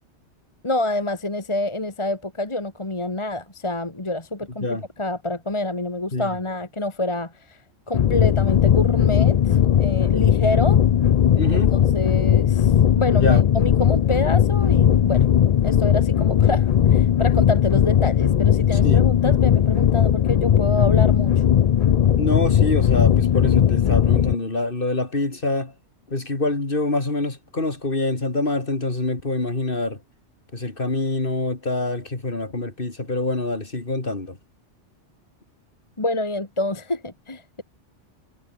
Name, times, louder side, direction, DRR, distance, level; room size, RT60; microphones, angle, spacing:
voice 1, 0.6-7.6 7.9-10.8 11.5-11.6 11.9-15.2 15.6-21.4 36.0-37.6, left 1 dB, 25° left, 1.9 m, -27 dB
sound 1, 7.9-24.3, left 9 dB, 85° left, 0.3 m, -18 dB
voice 2, 11.4-11.7 13.1-13.4 18.8-19.0 22.1-25.7 26.1-30.0 30.5-34.4, left 2 dB, 45° left, 3.3 m, -25 dB
omnidirectional pair, 1.3 m